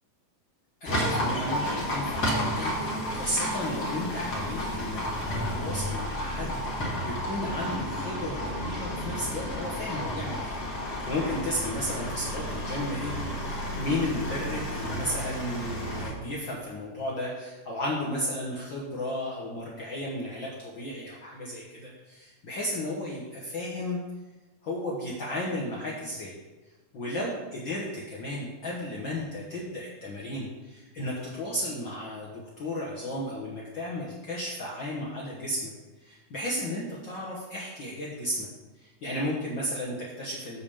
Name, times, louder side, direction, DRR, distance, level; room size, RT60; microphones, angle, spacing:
voice 1, 0.8-5.0 5.3-24.0 24.6-26.3 26.9-35.7 36.0-38.5 38.7-40.6, left 1 dB, 75° left, -4 dB, 1.0 m, -34 dB
Livestock farm animals working animals, 0.8-16.1, equal, 40° left, 1.5 m, -32 dB
sound 1, 11.9-16.3, right 6 dB, 75° right, 2.2 m, -44 dB
6.8 x 5.3 x 6.9 m, 1.2 s
omnidirectional pair, 3.9 m